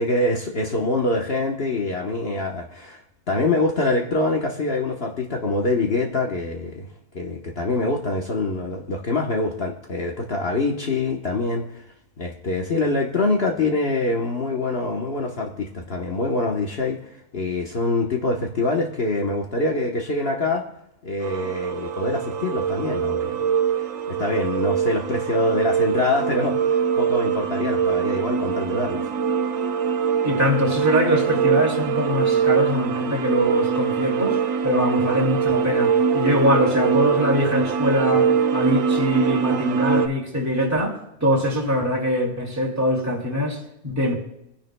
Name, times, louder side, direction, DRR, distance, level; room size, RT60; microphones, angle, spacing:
voice 1, 0.0-3.0 3.3-6.9 7.1-11.8 12.2-17.0 17.3-20.6 21.0-23.4 23.8-29.1, left 2 dB, 50° left, 1.3 m, -25 dB
sound 1, 21.2-40.1, right 7 dB, 80° right, 1.2 m, -23 dB
voice 2, 30.2-44.1, equal, 10° right, 2.3 m, -23 dB
27.0 x 10.5 x 2.2 m
omnidirectional pair, 1.4 m